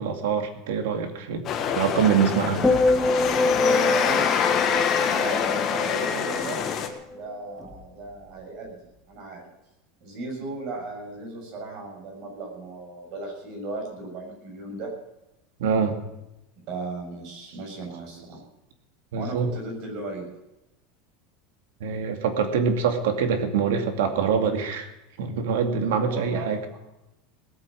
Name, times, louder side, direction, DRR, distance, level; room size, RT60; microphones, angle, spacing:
voice 1, 0.0-1.4 1.8-2.6 15.6-16.0 19.1-19.5 21.8-24.9 25.2-26.6, right 6 dB, 85° right, 6 dB, 2.4 m, -24 dB
sound 1, 1.4-6.9, left 7 dB, 30° left, 1.6 m, -25 dB
sound 2, 2.6-7.0 7.3-7.7, left 2 dB, 5° left, 1.3 m, -25 dB
voice 2, 3.5-4.8 5.1-6.6 7.1-8.8 9.1-9.4 10.0-14.9 16.7-18.4 19.2-20.3 26.1-26.8, right 3 dB, 45° right, 0 dB, 7.0 m, -36 dB
18.5 x 8.5 x 7.7 m, 0.90 s
supercardioid pair, 165°, 0 cm